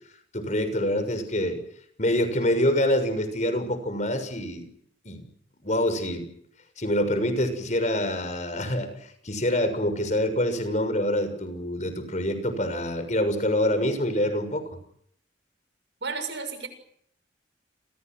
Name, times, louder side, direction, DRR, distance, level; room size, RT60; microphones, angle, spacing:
voice 1, 0.3-1.6 2.0-4.7 5.0-5.2 5.6-6.3 6.8-8.9 9.2-14.6, left 1 dB, 40° left, 9 dB, 6.5 m, -26 dB
voice 2, 16.0-16.7, right 4 dB, 75° right, 10 dB, 6.7 m, -32 dB
29.5 x 23.0 x 6.4 m, 0.69 s
head